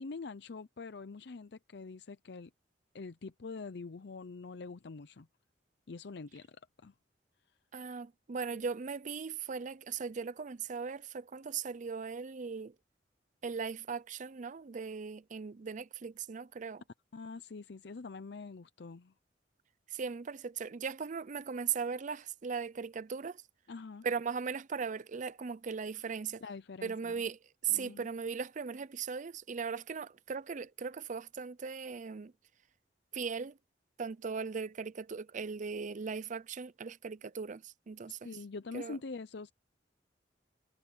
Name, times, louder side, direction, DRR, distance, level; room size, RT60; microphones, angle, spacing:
voice 1, 0.0-2.5 2.9-5.3 5.9-6.6 6.8-6.9 17.1-19.1 23.7-24.0 26.4-27.2 27.7-28.1 38.2-39.5, left 4 dB, 70° left, 0.6 m, -45 dB
voice 2, 7.7-12.7 13.4-16.8 19.9-23.4 24.0-26.4 26.8-32.3 33.1-33.6 34.0-38.3 38.7-39.0, right 6 dB, 45° right, 0.5 m, -38 dB
head